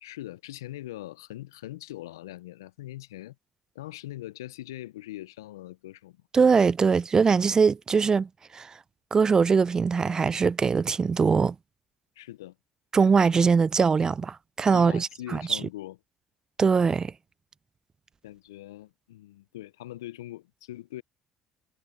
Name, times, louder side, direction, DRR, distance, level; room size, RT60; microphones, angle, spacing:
voice 1, 0.0-3.4 3.8-6.2 12.2-12.6 14.7-16.0 18.2-21.0, left 15 dB, 90° left, 0.4 m, -41 dB
voice 2, 6.3-8.3 8.5-8.7 9.1-11.6 12.9-15.6 16.6-17.1, right 5 dB, 30° right, 0.3 m, -22 dB
hypercardioid pair, 65°, 2 cm